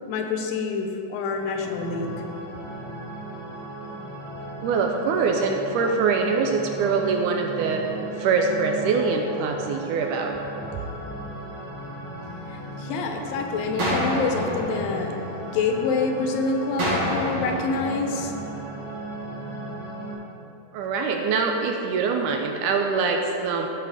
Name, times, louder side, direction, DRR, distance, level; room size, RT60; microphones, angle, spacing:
voice 1, 0.1-2.1 12.5-18.3, left 4 dB, 90° left, 3 dB, 2.6 m, -27 dB
sound 1, 1.2-20.1, right 2 dB, 75° left, 4.0 m, -36 dB
voice 2, 4.6-7.9 8.2-10.4 20.7-23.7, right 4 dB, 80° right, 3 dB, 2.0 m, -24 dB
sound 2, 13.8-15.8 16.8-18.8, equal, 45° right, 2.9 m, -29 dB
14.0 x 5.0 x 4.8 m, 2.9 s
omnidirectional pair, 4.0 m